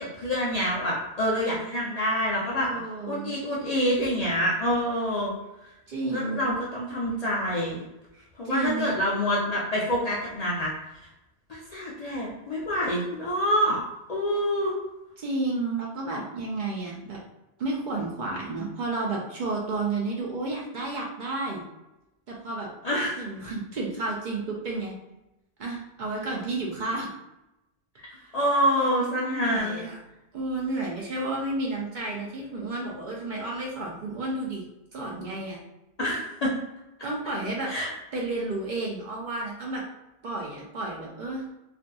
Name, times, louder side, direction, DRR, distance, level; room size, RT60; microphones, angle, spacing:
voice 1, 0.0-2.7 3.1-5.3 6.1-7.8 8.4-10.7 11.5-13.8 14.1-14.7 22.8-23.2 28.3-29.9 31.2-31.3 36.0-36.5 37.7-37.9, equal, 55° left, -5 dB, 0.4 m, -26 dB
voice 2, 2.6-3.4 5.9-6.5 8.1-8.9 15.2-17.2 17.6-21.6 22.3-22.7 23.2-25.0 25.6-27.1 28.1-28.3 29.2-30.0 30.3-34.6 34.9-35.6 37.0-37.7 38.1-39.8 40.2-41.4, right 2 dB, 55° right, -3 dB, 0.6 m, -31 dB
2.6 x 2.4 x 2.2 m, 0.93 s
omnidirectional pair, 1.1 m